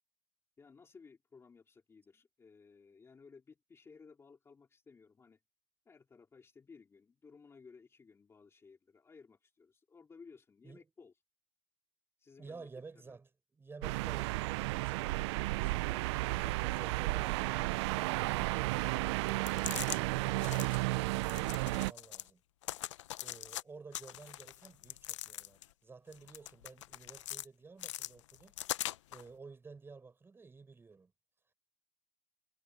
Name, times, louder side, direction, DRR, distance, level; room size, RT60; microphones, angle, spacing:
voice 1, 0.6-5.4 5.9-11.1 12.2-12.7 13.0-13.2, left 5 dB, 15° left, 2.6 m, -58 dB
voice 2, 12.4-18.8 19.2-22.4 23.2-28.5 29.1-31.1, right 4 dB, 15° right, 6.8 m, -53 dB
sound 1, 13.8-21.9, right 22 dB, 70° right, 0.5 m, -33 dB
sound 2, 19.3-20.0 20.4-20.8 21.2-22.3 22.6-23.6 23.9-25.7 26.1-27.5 27.8-29.2, left 14 dB, 85° left, 0.8 m, -42 dB
supercardioid pair, 120°, 15 cm